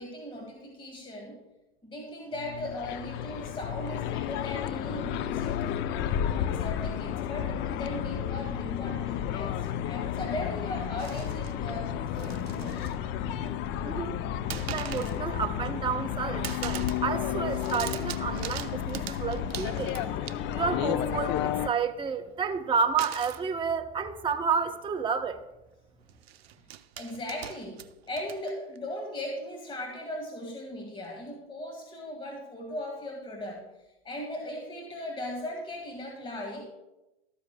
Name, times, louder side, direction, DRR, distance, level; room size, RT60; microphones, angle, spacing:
voice 1, 0.0-1.4 1.8-5.6 6.3-12.8 27.0-27.8 28.1-33.6 34.0-36.6, left 1 dB, 15° left, 1 dB, 1.8 m, -38 dB
sound 1, 2.3-21.7, left 10 dB, 35° left, 0.6 m, -32 dB
sound 2, 11.0-11.5 12.0-13.0 13.3-13.8 14.5-15.2 15.6-16.1 16.4-17.1 17.3-20.7 23.0-23.5 24.4-24.5 24.8-25.0 26.1-28.8, right 12 dB, 75° right, 0.7 m, -42 dB
voice 2, 13.8-14.2 14.7-20.0 20.5-21.4 21.7-25.4, right 6 dB, 15° right, 7 dB, 0.8 m, -30 dB
13.0 x 13.0 x 2.2 m, 0.97 s
hypercardioid pair, 105°, 31 cm